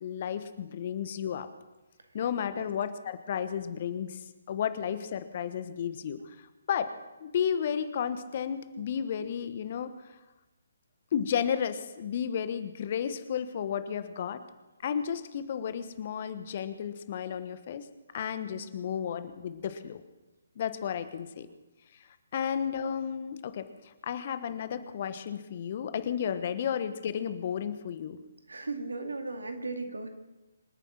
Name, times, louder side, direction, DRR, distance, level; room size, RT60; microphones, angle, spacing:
voice 1, 0.0-1.5 2.1-6.9 7.2-10.1 11.1-14.4 14.8-17.9 18.1-20.0 20.6-21.5 22.3-28.2, left 8 dB, 45° left, 11 dB, 1.2 m, -33 dB
voice 2, 28.5-30.1, right 3 dB, 75° right, 5 dB, 2.3 m, -37 dB
26.0 x 9.1 x 6.0 m, 1.1 s
figure-of-eight pair, 140°, 0 cm